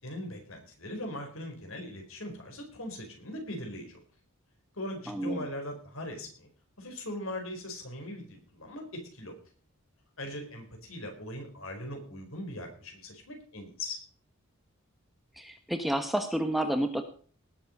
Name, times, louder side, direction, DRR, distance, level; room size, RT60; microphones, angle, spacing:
voice 1, 0.0-4.0 4.7-6.5 6.8-9.3 10.2-14.0, left 1 dB, 70° left, 4 dB, 4.7 m, -40 dB
voice 2, 5.1-5.5 15.4-17.0, right 1 dB, ahead, 7 dB, 1.0 m, -30 dB
19.0 x 7.6 x 5.3 m, 0.43 s
head